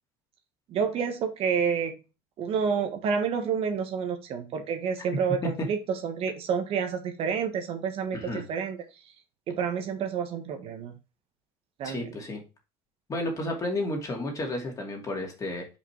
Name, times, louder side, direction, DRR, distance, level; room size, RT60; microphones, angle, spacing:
voice 1, 0.7-2.0 2.4-8.8 9.5-10.9 11.8-12.2, right 6 dB, 55° right, 5 dB, 1.4 m, -29 dB
voice 2, 8.1-8.4 11.8-12.4 13.1-15.7, left 1 dB, 30° left, 1 dB, 2.6 m, -32 dB
5.4 x 5.0 x 4.5 m, 0.29 s
supercardioid pair, 110°, 12 cm